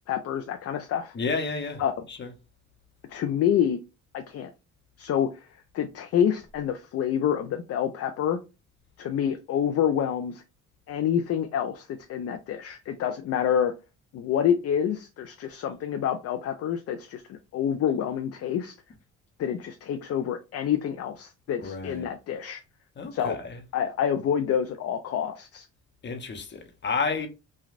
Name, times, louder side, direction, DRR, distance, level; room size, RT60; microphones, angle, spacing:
voice 1, 0.1-1.1 1.8-1.9 3.1-3.8 4.1-4.5 5.0-5.3 5.7-8.4 9.0-10.4 10.9-13.7 14.1-18.7 19.4-22.6 23.1-23.4 23.7-25.7, left 9 dB, 55° left, 0.4 m, -27 dB
voice 2, 1.1-1.8 2.1-2.3 21.6-22.1 23.0-23.6 26.0-27.3, left 4 dB, 35° left, 0.8 m, -31 dB
3.1 x 2.3 x 2.4 m
cardioid pair, 90°, 30 cm